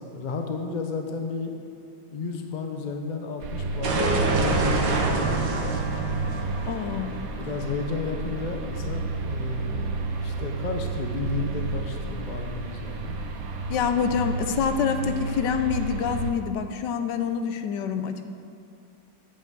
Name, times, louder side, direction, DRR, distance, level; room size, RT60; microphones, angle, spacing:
voice 1, 0.0-1.5 2.1-5.8 6.9-13.2, left 4 dB, 50° left, 4 dB, 0.5 m, -33 dB
sound 1, 3.4-16.3, right 3 dB, 60° right, 1.0 m, -31 dB
sound 2, 3.8-8.6, right 2 dB, 80° right, 1.7 m, -27 dB
voice 2, 6.7-7.2 13.7-18.3, left 7 dB, 75° left, 8 dB, 1.2 m, -26 dB
8.8 x 5.5 x 7.5 m, 2.6 s
omnidirectional pair, 2.0 m